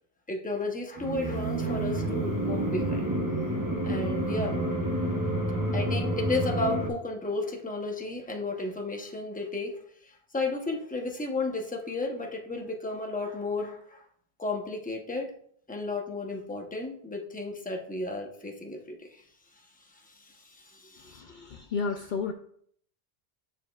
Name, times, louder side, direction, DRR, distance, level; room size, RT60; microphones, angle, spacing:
voice 1, 0.3-3.2 3.8-4.7 5.7-9.8 10.0-14.0 14.4-15.3 15.7-19.2 19.9-21.5, left 2 dB, 10° left, 2 dB, 0.7 m, -33 dB
sound 1, 1.0-6.9, right 1 dB, 20° right, 0.8 m, -29 dB
voice 2, 21.0-22.3, left 5 dB, 60° left, 4 dB, 0.6 m, -32 dB
7.4 x 6.6 x 2.3 m, 0.64 s
omnidirectional pair, 1.1 m